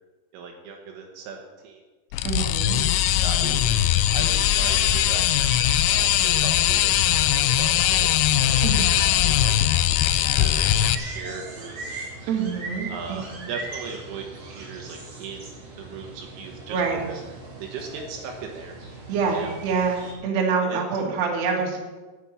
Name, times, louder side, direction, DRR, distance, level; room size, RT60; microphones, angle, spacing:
voice 1, 0.3-1.8 2.4-3.0 3.2-5.3 5.8-8.1 8.4-11.9 12.9-15.5 15.8-16.8 17.1-17.2 17.6-18.8 19.3-19.6 20.7-20.8, right 5 dB, 80° right, 1 dB, 3.7 m, -38 dB
sound 1, 2.1-11.0, left 12 dB, 85° left, 2.9 m, -21 dB
voice 2, 2.2-2.8 8.6-8.9 12.3-12.9 13.3-13.4 16.7-17.0 19.1-21.8, right 5 dB, 60° right, 0 dB, 3.6 m, -25 dB
sound 2, 2.6-20.1, right 2 dB, 35° right, 2.9 m, -40 dB
10.5 x 8.0 x 8.6 m, 1.3 s
omnidirectional pair, 5.9 m